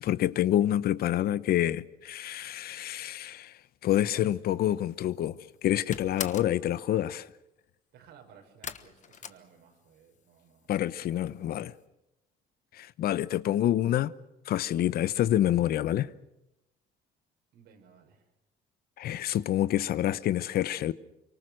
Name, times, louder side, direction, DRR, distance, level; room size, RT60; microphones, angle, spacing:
voice 1, 0.0-3.5 3.8-7.3 10.7-11.7 12.7-14.1 14.5-16.1 19.0-20.9, left 12 dB, 65° left, 0.9 m, -27 dB
sound 1, 4.9-5.3 5.6-6.6 8.6-10.1 10.4-11.0 11.3-11.4 11.8-11.9, left 8 dB, 45° left, 1.3 m, -40 dB
voice 2, 7.9-10.8 17.5-18.3, right 7 dB, 80° right, 6.0 m, -57 dB
25.0 x 23.5 x 6.4 m
cardioid pair, 110°, 17 cm